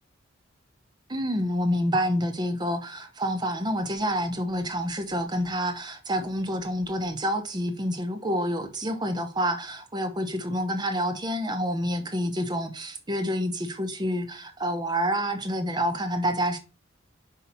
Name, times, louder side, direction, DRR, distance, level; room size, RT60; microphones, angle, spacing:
voice 1, 1.1-16.6, equal, 20° right, 1.0 m, -28 dB
5.4 x 5.4 x 4.4 m
head